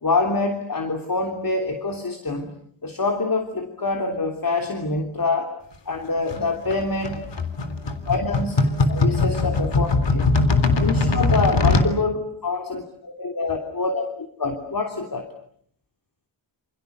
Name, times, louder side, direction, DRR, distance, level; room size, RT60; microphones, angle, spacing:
voice 1, 0.0-2.5 2.8-5.5 5.9-7.3 8.1-10.3 10.7-14.1 14.4-15.3, left 3 dB, 50° left, 4 dB, 3.3 m, -25 dB
sound 1, 6.3-11.9, left 3 dB, 70° left, 3.6 m, -21 dB
28.5 x 28.5 x 6.9 m, 0.65 s
wide cardioid pair, 115°, 44 cm